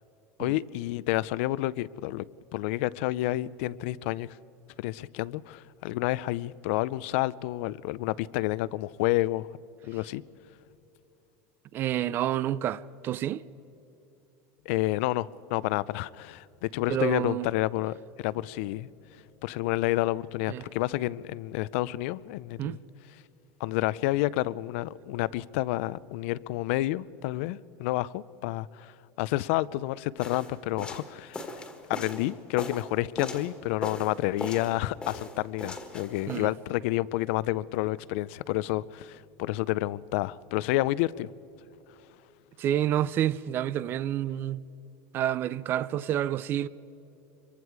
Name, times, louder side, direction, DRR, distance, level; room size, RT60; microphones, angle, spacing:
voice 1, 0.4-2.2 2.5-4.3 4.8-9.5 9.8-10.2 14.7-18.9 19.4-22.8 23.6-31.6 31.9-41.3, left 17 dB, 60° left, 0.5 m, -29 dB
voice 2, 11.7-13.4 16.9-17.5 20.5-20.6 22.6-22.8 36.3-36.5 42.6-44.6 45.1-46.7, right 11 dB, 30° right, 0.4 m, -29 dB
sound 1, 30.2-33.5 33.8-34.8 35.0-36.5, left 2 dB, 10° left, 1.6 m, -38 dB
26.0 x 23.0 x 4.7 m
cardioid pair, 170°, 8 cm